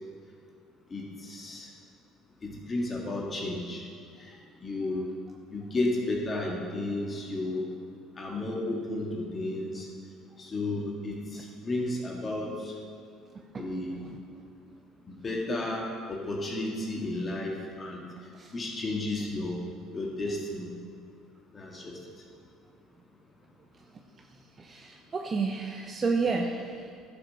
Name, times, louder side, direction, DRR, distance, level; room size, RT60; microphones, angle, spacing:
voice 1, 0.9-1.7 2.4-3.9 4.2-5.1 5.5-7.7 8.2-9.9 10.4-12.8 13.6-14.0 15.1-18.0 18.5-19.6 19.9-20.7 21.5-22.0, left 2 dB, 30° left, -1 dB, 1.9 m, -33 dB
voice 2, 13.3-13.7 14.0-14.4 18.3-18.5 24.6-26.9, right 4 dB, 35° right, 3 dB, 0.8 m, -31 dB
11.5 x 5.8 x 6.4 m, 2.2 s
hypercardioid pair, 75°, 0 cm